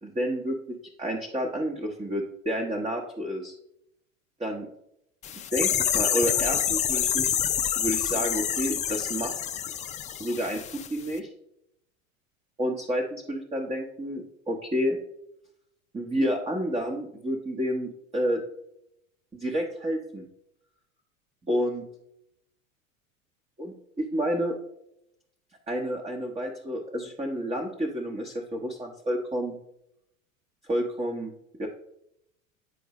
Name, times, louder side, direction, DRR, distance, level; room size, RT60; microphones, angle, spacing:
voice 1, 0.0-3.5 4.4-4.7 5.5-7.3 7.8-9.4 10.2-11.3 12.6-15.0 15.9-18.4 19.3-20.3 21.5-21.8 23.6-24.6 25.7-29.6 30.6-31.3 31.6-31.7, equal, 15° right, 0 dB, 1.1 m, -30 dB
sound 1, 5.2-10.9 11.1-11.2, left 9 dB, 20° left, 0.4 m, -27 dB
9.4 x 4.5 x 3.1 m, 0.77 s
figure-of-eight pair, 85°, 40 cm